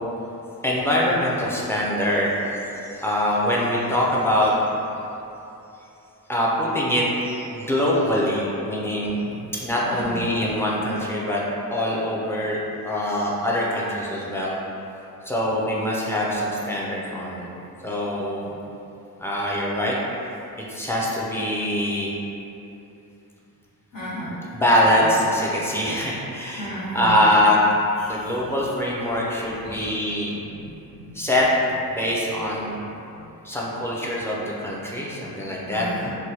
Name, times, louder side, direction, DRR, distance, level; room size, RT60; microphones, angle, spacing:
voice 1, 0.6-4.5 6.3-9.2 9.6-11.4 11.7-14.6 15.3-17.5 17.8-18.6 19.2-20.0 20.7-22.1 24.5-27.6 28.1-30.4 31.1-31.5 31.9-32.7 33.4-35.9, left 1 dB, 5° left, -5 dB, 0.4 m, -23 dB
voice 2, 9.8-10.2 23.9-24.4 26.6-27.2 28.0-28.2 29.6-30.2 30.6-31.1 33.2-33.3 35.7-36.2, right 1 dB, 60° left, -9 dB, 1.2 m, -34 dB
3.3 x 2.2 x 2.8 m, 2.9 s
cardioid pair, 95°, 37 cm